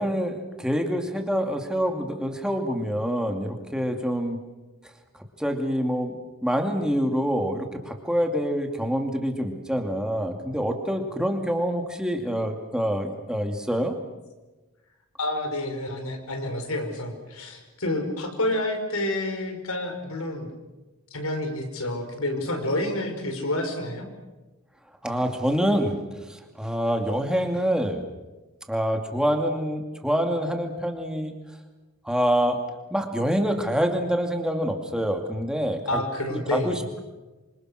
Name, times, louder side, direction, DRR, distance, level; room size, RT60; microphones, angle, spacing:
voice 1, 0.0-4.4 5.4-6.2 6.4-14.0 25.0-26.0 26.3-28.1 28.7-31.4 32.0-32.6 32.9-36.0 36.5-37.0, equal, 5° right, 4 dB, 2.5 m, -26 dB
voice 2, 15.2-20.5 21.1-24.1 35.9-36.8, left 1 dB, 80° left, 5 dB, 5.4 m, -29 dB
26.5 x 26.0 x 6.5 m, 1.2 s
head